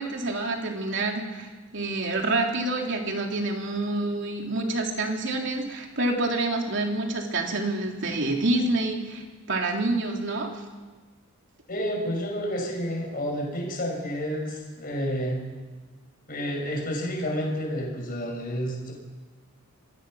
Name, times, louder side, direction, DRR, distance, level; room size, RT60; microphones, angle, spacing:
voice 1, 0.0-10.5, right 2 dB, 55° right, 1 dB, 3.3 m, -27 dB
voice 2, 11.7-15.4 16.3-18.9, equal, 40° left, 0 dB, 6.0 m, -30 dB
26.0 x 19.0 x 6.4 m, 1.3 s
head